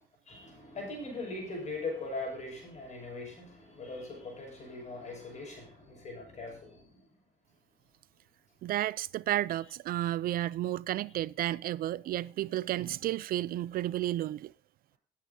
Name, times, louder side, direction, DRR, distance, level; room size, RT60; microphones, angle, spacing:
voice 1, 0.3-7.1, left 2 dB, 45° left, 6.2 m, -40 dB
voice 2, 8.6-14.5, right 14 dB, 60° right, 0.4 m, -32 dB
19.5 x 8.4 x 2.8 m
cardioid pair, 110°, 17 cm